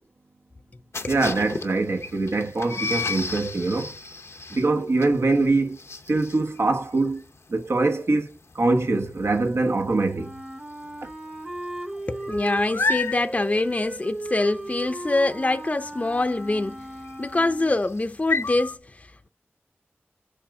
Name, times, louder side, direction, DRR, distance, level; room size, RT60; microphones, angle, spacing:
sound 1, 0.9-10.4 10.7-11.1 11.3-18.8, left 3 dB, 80° left, 0.8 m, -32 dB
voice 1, 1.1-3.9 4.5-5.8 6.1-7.2 7.5-10.3, right 3 dB, 75° right, 1.1 m, -23 dB
Wind instrument woodwind instrument, 10.1-17.8, right 1 dB, 15° right, 0.9 m, -37 dB
voice 2, 12.1-16.9 17.2-19.3, left 2 dB, 35° left, 0.5 m, -25 dB
7.0 x 4.9 x 3.6 m
wide cardioid pair, 70°, 4 cm